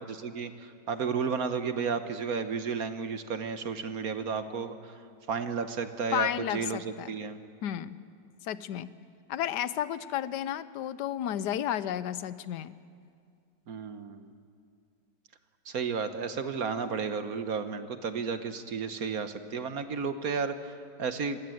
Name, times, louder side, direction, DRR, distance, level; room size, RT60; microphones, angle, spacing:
voice 1, 0.1-5.0 5.3-7.4 13.7-14.3 15.7-21.4, right 5 dB, 55° right, 9 dB, 1.4 m, -33 dB
voice 2, 6.1-7.1 7.6-8.0 8.4-8.9 9.3-12.8, left 10 dB, 70° left, 15 dB, 1.3 m, -32 dB
26.5 x 20.5 x 7.8 m, 2.3 s
omnidirectional pair, 2.0 m